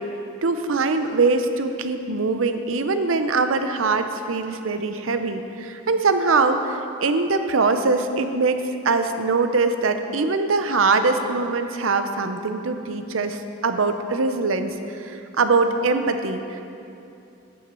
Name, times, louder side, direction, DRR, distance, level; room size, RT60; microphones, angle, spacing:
voice 1, 0.4-16.6, right 3 dB, 90° right, 8 dB, 0.7 m, -22 dB
9.3 x 7.1 x 6.1 m, 2.7 s
head